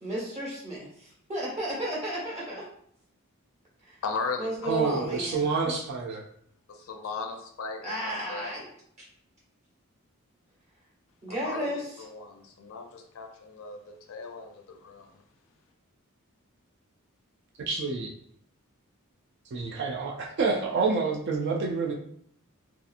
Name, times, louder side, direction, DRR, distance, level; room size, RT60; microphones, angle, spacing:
voice 1, 0.0-2.6 3.9-4.0 4.4-5.7 7.8-8.7 11.2-11.9, equal, 30° right, -6 dB, 1.2 m, -33 dB
voice 2, 4.0-5.0 6.7-8.5 11.3-15.2, left 4 dB, 70° left, 4 dB, 0.4 m, -37 dB
voice 3, 4.7-6.2 17.7-18.1 19.5-21.9, right 4 dB, 50° right, 0 dB, 0.3 m, -28 dB
2.7 x 2.4 x 2.4 m, 0.68 s
head